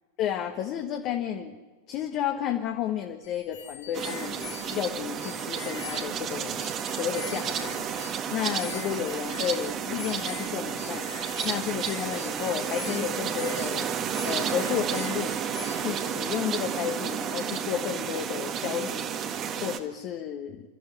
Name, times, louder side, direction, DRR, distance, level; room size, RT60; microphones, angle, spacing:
voice 1, 0.2-1.5 1.9-6.6 6.9-7.8 8.3-13.9 14.2-15.4 15.7-19.1 19.6-20.6, left 10 dB, 40° left, 3 dB, 1.4 m, -32 dB
sound 1, 3.2-16.2, left 10 dB, 60° left, 2.6 m, -44 dB
sound 2, 3.9-19.8, right 8 dB, 30° right, 1.7 m, -32 dB
28.5 x 13.5 x 8.1 m, 1.3 s
figure-of-eight pair, 90°, 0 cm